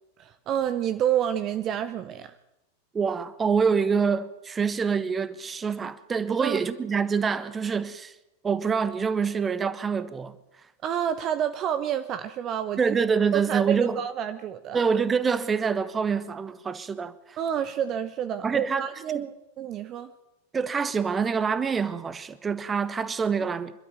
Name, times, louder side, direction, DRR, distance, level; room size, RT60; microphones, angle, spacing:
voice 1, 0.2-2.3 6.4-6.6 10.8-12.9 13.3-14.8 17.4-20.1, right 9 dB, 35° right, 1.0 m, -29 dB
voice 2, 2.9-8.1 8.4-10.4 12.8-14.0 14.7-17.4 18.4-19.3 20.5-23.7, right 6 dB, 15° right, 1.3 m, -26 dB
26.0 x 12.5 x 9.3 m
figure-of-eight pair, 90°, 0 cm